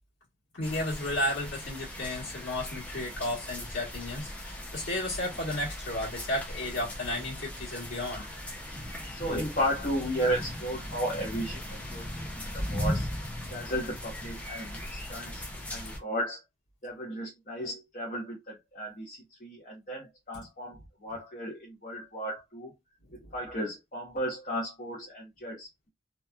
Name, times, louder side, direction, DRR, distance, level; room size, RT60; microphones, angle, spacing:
voice 1, 0.5-8.3 15.2-15.4 15.8-16.0 23.2-23.3, left 1 dB, 85° left, 1.4 m, -33 dB
sound 1, 0.6-16.0, left 1 dB, 10° left, 0.5 m, -38 dB
voice 2, 8.9-12.1 12.3-13.1 13.5-16.4 16.8-22.7 23.3-25.9, equal, 45° left, 0.9 m, -34 dB
2.9 x 2.3 x 2.3 m
head